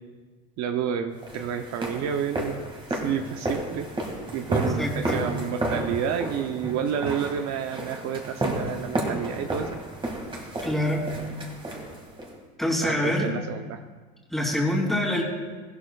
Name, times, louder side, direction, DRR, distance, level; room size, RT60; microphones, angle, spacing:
voice 1, 0.6-2.6 2.9-3.9 4.3-9.8 12.8-13.8, right 8 dB, 55° right, 6 dB, 0.7 m, -30 dB
sound 1, 1.2-12.4, right 1 dB, 15° right, 2.1 m, -32 dB
voice 2, 4.8-5.2 10.6-11.0 12.6-13.3 14.3-15.2, left 1 dB, ahead, -3 dB, 2.8 m, -25 dB
15.0 x 12.0 x 2.4 m, 1.4 s
supercardioid pair, 125°, 31 cm